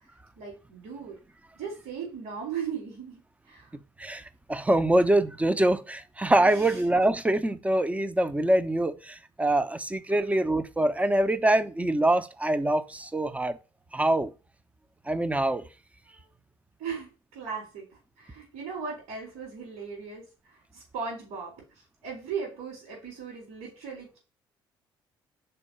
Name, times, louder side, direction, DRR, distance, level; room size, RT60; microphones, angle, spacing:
voice 1, 0.4-1.2 1.5-3.2 3.5-3.7 6.4-6.8 10.1-10.3 16.1-16.3 16.8-24.2, right 6 dB, 70° right, 4.3 m, -38 dB
voice 2, 4.5-13.5 13.9-14.3 15.1-15.7, right 1 dB, 10° right, 0.8 m, -24 dB
5.6 x 4.5 x 5.6 m
hypercardioid pair, 50°, 12 cm